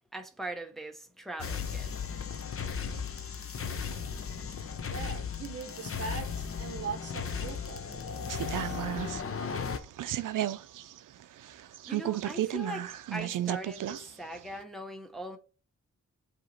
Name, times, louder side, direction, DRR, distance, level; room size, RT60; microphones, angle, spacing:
voice 1, 0.1-1.9 2.9-3.0 11.9-15.4, right 1 dB, ahead, 0.8 m, -41 dB
sound 1, 1.4-9.8, left 6 dB, 45° left, 0.7 m, -36 dB
voice 2, 4.9-8.9, right 5 dB, 50° right, 0.9 m, -41 dB
sound 2, 8.3-14.1 14.4-14.5, right 12 dB, 90° right, 0.5 m, -33 dB
7.8 x 2.9 x 4.2 m
wide cardioid pair, 115°, 31 cm